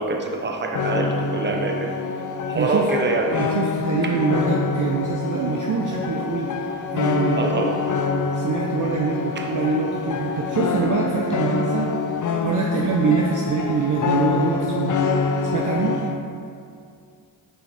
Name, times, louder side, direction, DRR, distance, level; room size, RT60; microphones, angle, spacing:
voice 1, 0.0-1.9 2.5-3.5 4.0-4.2 7.4-7.8 9.4-9.5, right 3 dB, 25° right, 2 dB, 0.9 m, -25 dB
sound 1, 0.7-16.2, left 4 dB, 40° left, 0.6 m, -25 dB
voice 2, 2.5-2.9 3.3-7.5 8.3-11.9 12.4-15.2 15.4-16.0, right 5 dB, 40° right, 0 dB, 0.7 m, -24 dB
7.2 x 4.8 x 3.4 m, 2.3 s
supercardioid pair, 55°, 48 cm